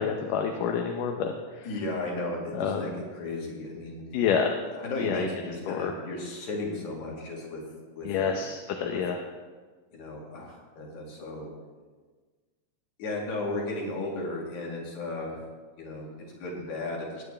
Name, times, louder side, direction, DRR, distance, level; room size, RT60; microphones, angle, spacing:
voice 1, 0.0-1.7 2.5-2.8 4.1-4.5 5.0-5.3 5.7-5.9 8.0-9.2, left 7 dB, 80° left, 3 dB, 2.3 m, -28 dB
voice 2, 1.7-4.0 4.7-7.6 8.0-8.4 8.9-9.0 9.9-11.5 13.0-15.4 15.8-17.2, left 2 dB, 60° left, -2 dB, 3.4 m, -35 dB
19.0 x 9.2 x 3.3 m, 1.4 s
omnidirectional pair, 3.9 m